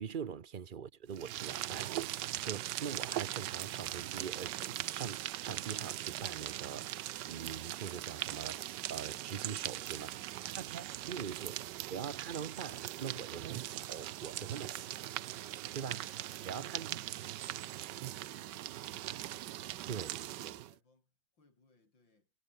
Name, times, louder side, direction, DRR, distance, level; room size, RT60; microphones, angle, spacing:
voice 1, 0.0-10.1 10.4-14.9 15.7-16.1 16.4-17.0 19.9-20.2 20.4-20.5, right 7 dB, 55° right, 0.5 m, -43 dB
sound 1, 1.1-20.7, right 14 dB, 70° right, 1.2 m, -40 dB
voice 2, 9.5-11.8 14.2-14.9 15.6-19.0 19.5-22.3, left 3 dB, 70° left, 5.7 m, -70 dB
omnidirectional pair, 2.1 m